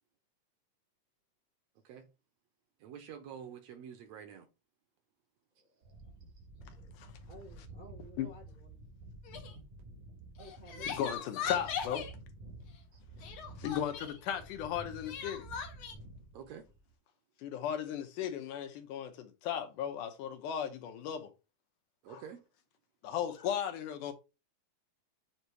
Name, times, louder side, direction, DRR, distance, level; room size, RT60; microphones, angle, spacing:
voice 1, 2.8-4.5 16.3-16.6 22.0-22.4, right 8 dB, 75° right, 1.7 m, -47 dB
voice 2, 5.6-6.1 6.8-7.0 7.3-8.8 10.4-11.5, equal, 40° right, 0.6 m, -54 dB
sound 1, 5.8-16.9, right 2 dB, 90° right, 3.2 m, -51 dB
Crying sobbing, 9.3-9.5 10.4-12.1 13.2-14.2 15.0-15.9, left 7 dB, 70° left, 1.3 m, -39 dB
voice 3, 10.9-12.1 13.6-15.5 17.4-21.3 22.1-22.2 23.0-24.1, left 9 dB, 85° left, 2.4 m, -36 dB
7.9 x 2.8 x 4.5 m
omnidirectional pair, 3.6 m